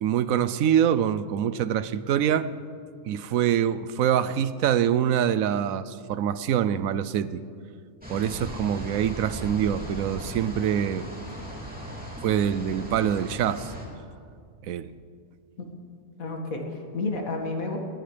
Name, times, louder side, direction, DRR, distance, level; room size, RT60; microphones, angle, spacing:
voice 1, 0.0-2.5 3.1-7.4 8.1-11.1 12.2-13.7 14.6-14.9, right 9 dB, 80° right, 15 dB, 1.0 m, -25 dB
sound 1, 8.0-13.8, equal, 5° right, 2.8 m, -37 dB
voice 2, 16.2-17.8, left 3 dB, 75° left, 1 dB, 2.5 m, -31 dB
19.5 x 19.0 x 3.4 m, 2.3 s
omnidirectional pair, 1.4 m